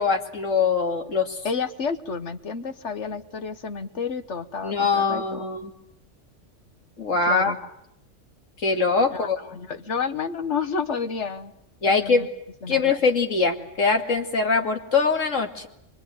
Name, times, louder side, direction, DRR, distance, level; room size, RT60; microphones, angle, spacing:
voice 1, 0.0-1.4 4.6-5.7 7.0-7.5 8.6-9.4 11.8-12.2 12.7-15.7, left 4 dB, 85° left, 4 dB, 2.7 m, -22 dB
voice 2, 1.4-5.5 7.3-7.6 9.1-11.5 11.9-12.3 12.6-12.9, left 5 dB, 65° left, 10 dB, 1.5 m, -30 dB
25.0 x 22.5 x 9.4 m, 0.77 s
omnidirectional pair, 1.3 m